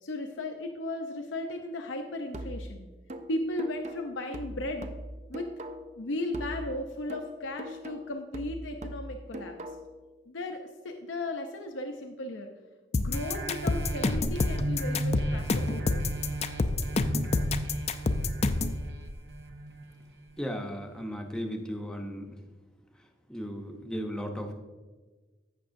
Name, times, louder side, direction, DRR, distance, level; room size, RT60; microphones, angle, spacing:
voice 1, 0.0-2.9 3.3-4.9 5.3-5.5 5.9-9.6 10.3-12.5 12.9-16.0, left 1 dB, 85° left, 4 dB, 0.6 m, -36 dB
sound 1, 2.3-6.0 6.3-10.0, right 1 dB, 35° right, 0.5 m, -41 dB
sound 2, 12.9-18.8, left 3 dB, 35° left, 0.4 m, -27 dB
sound 3, 13.1-20.3 20.8-20.9, right 1 dB, 60° right, 0.8 m, -35 dB
voice 2, 20.4-22.3 23.3-24.5, equal, 5° left, 2 dB, 0.7 m, -35 dB
15.0 x 6.0 x 2.6 m, 1.3 s
head